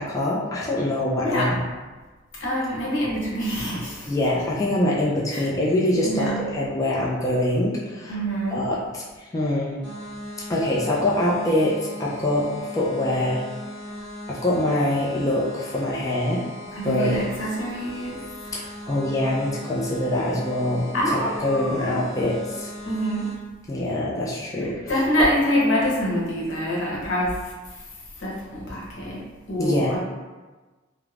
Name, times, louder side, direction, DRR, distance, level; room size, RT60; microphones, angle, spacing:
voice 1, 0.0-1.7 4.1-8.2 8.5-9.8 10.5-12.5 12.7-13.4 14.3-16.4 16.8-17.2 18.5-22.7 23.7-25.3 29.6-30.0, left 1 dB, 15° left, -5 dB, 0.3 m, -24 dB
voice 2, 2.4-4.1 5.3-5.5 6.0-6.5 8.1-8.7 16.7-18.2 20.9-22.0 22.8-23.3 24.9-27.4 28.2-30.0, equal, 80° left, -5 dB, 0.8 m, -26 dB
sound 1, 9.8-23.3, left 1 dB, 20° right, 0.7 m, -38 dB
2.4 x 2.0 x 3.2 m, 1.3 s
head